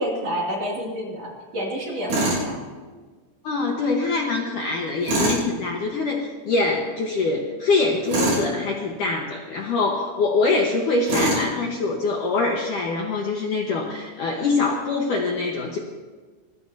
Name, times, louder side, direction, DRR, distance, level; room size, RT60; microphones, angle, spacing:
voice 1, 0.0-2.6, equal, 40° right, -3 dB, 3.2 m, -29 dB
Tools, 2.1-2.5 5.0-5.4 8.1-8.5 11.1-11.5, right 1 dB, 75° right, 9.2 m, -22 dB
voice 2, 3.4-15.8, left 3 dB, 65° left, 0 dB, 2.2 m, -24 dB
24.0 x 21.0 x 2.8 m, 1.4 s
omnidirectional pair, 5.2 m